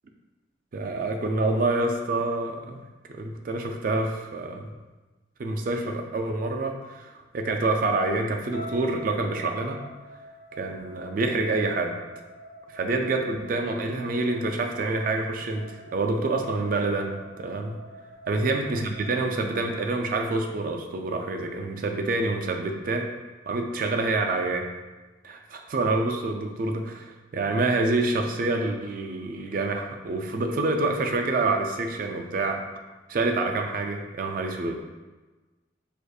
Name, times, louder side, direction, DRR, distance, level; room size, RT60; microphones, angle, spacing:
voice 1, 0.7-2.8 3.1-4.7 5.4-9.8 10.6-12.0 12.7-17.8 18.3-23.1 23.5-24.7 25.2-32.6 33.1-34.8, right 2 dB, 50° right, 3 dB, 0.4 m, -27 dB
sound 1, 8.5-20.7, right 1 dB, 65° left, 1.5 m, -46 dB
4.8 x 2.5 x 2.3 m, 1.2 s
head